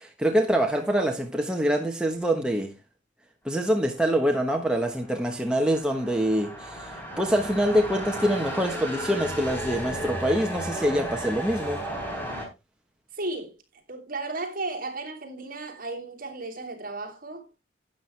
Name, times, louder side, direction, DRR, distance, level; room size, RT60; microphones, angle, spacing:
voice 1, 0.0-2.7 3.4-11.8, equal, 5° right, 1.2 m, -25 dB
sound 1, 4.6-12.5, equal, 10° left, 4.0 m, -34 dB
voice 2, 13.1-17.4, right 2 dB, 45° right, 2.9 m, -35 dB
12.0 x 9.2 x 3.3 m
head